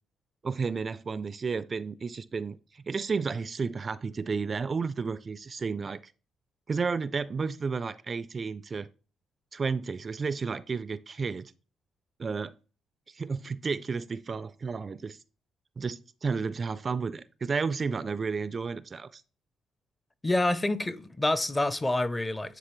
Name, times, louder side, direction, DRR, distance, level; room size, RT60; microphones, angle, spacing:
voice 1, 0.4-6.1 6.7-8.9 9.5-11.5 12.2-12.5 13.1-15.2 15.8-19.2, right 5 dB, 35° right, 0.3 m, -32 dB
voice 2, 20.2-22.6, left 2 dB, 20° left, 0.6 m, -27 dB
9.6 x 3.7 x 3.1 m
cardioid pair, 90°, 0 cm